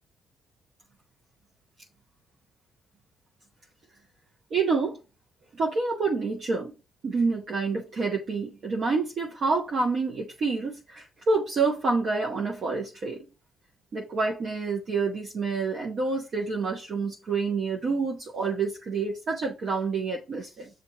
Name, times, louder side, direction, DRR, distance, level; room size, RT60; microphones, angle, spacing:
voice 1, 4.5-5.0 5.6-6.7 7.0-13.2 13.9-20.7, right 4 dB, 55° right, 1.0 m, -28 dB
7.0 x 2.6 x 2.8 m
cardioid pair, 90°, 0 cm